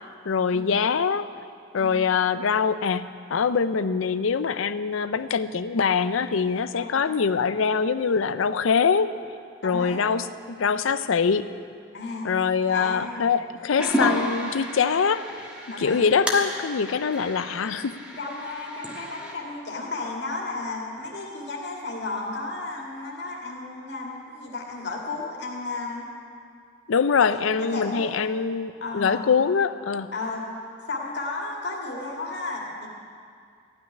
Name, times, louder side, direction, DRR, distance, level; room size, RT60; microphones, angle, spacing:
voice 1, 0.2-1.3 1.7-9.1 9.6-11.5 12.2-15.5 15.8-18.0 26.9-30.1, left 6 dB, 85° left, 13 dB, 0.5 m, -24 dB
voice 2, 1.8-2.1 6.7-7.1 9.6-10.1 11.9-12.3 12.7-13.4 15.7-16.1 18.2-26.0 27.7-28.2 28.8-29.2 30.1-30.5 30.9-32.9, left 3 dB, 55° left, -2 dB, 2.2 m, -33 dB
sound 1, 13.8-19.3, equal, 5° right, 1.4 m, -31 dB
15.0 x 6.3 x 9.7 m, 2.3 s
head